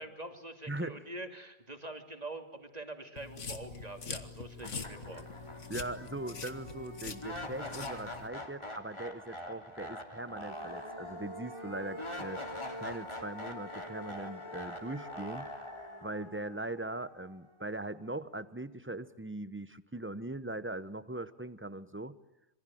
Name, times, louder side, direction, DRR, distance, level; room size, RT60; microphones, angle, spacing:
voice 1, 0.0-5.2, right 2 dB, 30° right, 5 dB, 2.9 m, -45 dB
voice 2, 0.7-1.0 4.6-4.8 5.7-12.4 12.8-15.5 16.0-22.2, right 2 dB, 10° right, 14 dB, 0.9 m, -40 dB
sound 1, 3.2-8.3, left 5 dB, 85° left, 2.0 m, -44 dB
sound 2, 4.1-4.2 4.6-17.7, left 1 dB, 25° left, 3.0 m, -43 dB
26.5 x 24.0 x 9.3 m, 0.88 s
omnidirectional pair, 1.2 m